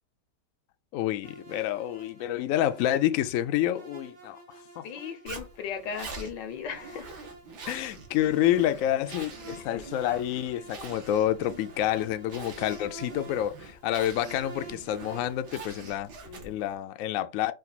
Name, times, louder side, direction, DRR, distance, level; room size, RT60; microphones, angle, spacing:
voice 1, 0.9-4.4 4.8-4.9 7.7-16.1 16.4-17.5, left 12 dB, 75° left, 0.8 m, -28 dB
sound 1, 1.2-15.5, right 3 dB, 90° right, 2.1 m, -49 dB
voice 2, 4.8-7.1 9.6-9.8 16.2-16.6, left 6 dB, 90° left, 1.6 m, -37 dB
Zipper (clothing), 5.3-16.7, right 3 dB, 70° right, 1.8 m, -45 dB
5.1 x 2.4 x 4.0 m
omnidirectional pair, 1.9 m